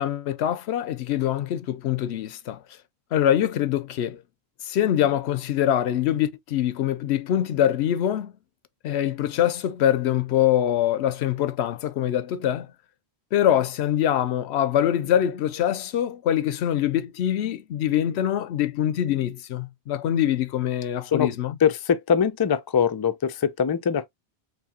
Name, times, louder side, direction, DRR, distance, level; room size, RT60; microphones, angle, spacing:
voice 1, 0.0-2.6 3.1-4.2 4.6-8.3 8.8-12.7 13.3-21.6, left 11 dB, 90° left, 0.9 m, -24 dB
voice 2, 21.6-24.1, left 7 dB, 40° left, 0.3 m, -22 dB
4.6 x 3.3 x 2.8 m
omnidirectional pair, 1.1 m